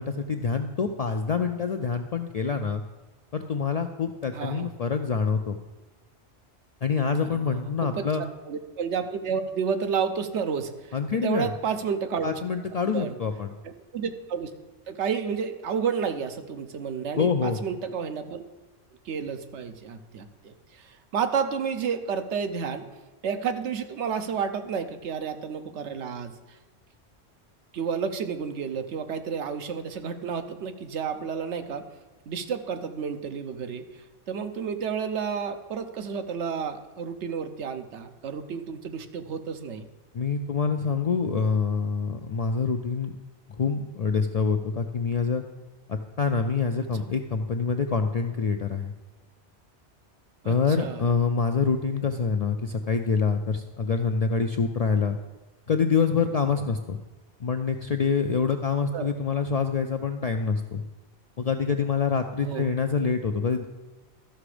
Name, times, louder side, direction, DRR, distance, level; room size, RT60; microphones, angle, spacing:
voice 1, 0.0-2.8 3.3-5.6 6.8-8.2 10.9-11.5 12.2-13.5 17.2-17.6 40.1-43.1 43.6-45.4 45.9-48.9 50.5-55.2 55.7-57.0 57.4-60.8 61.4-63.7, left 5 dB, 60° left, 5 dB, 0.4 m, -26 dB
voice 2, 4.3-4.7 7.2-8.1 8.5-12.4 12.9-13.2 13.6-14.5 14.9-18.4 19.1-22.9 23.2-26.3 27.7-31.8 32.3-33.8 34.3-39.9 50.4-51.0 58.9-59.1 62.4-62.7, right 6 dB, 80° right, 8 dB, 1.0 m, -31 dB
13.0 x 6.0 x 4.9 m, 1.2 s
omnidirectional pair, 1.2 m